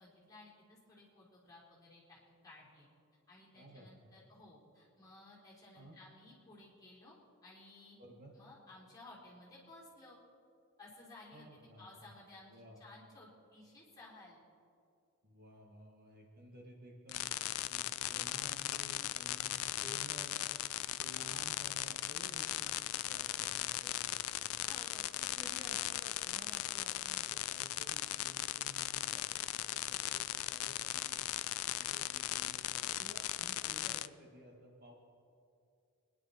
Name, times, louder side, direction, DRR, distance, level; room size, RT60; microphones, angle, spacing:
voice 1, 0.0-2.9 3.3-8.0 8.3-10.2 10.8-11.5 11.8-14.4 24.6-25.3, left 2 dB, 15° left, -6 dB, 3.8 m, -57 dB
voice 2, 3.5-4.1 5.7-6.0 8.0-8.3 11.3-11.9 12.5-12.8 15.2-20.4 20.9-24.4 25.2-31.3 31.8-34.9, equal, 40° right, -1 dB, 1.8 m, -55 dB
sound 1, 17.1-34.1, left 14 dB, 70° left, 0.4 m, -38 dB
24.5 x 11.0 x 4.3 m, 2.5 s
head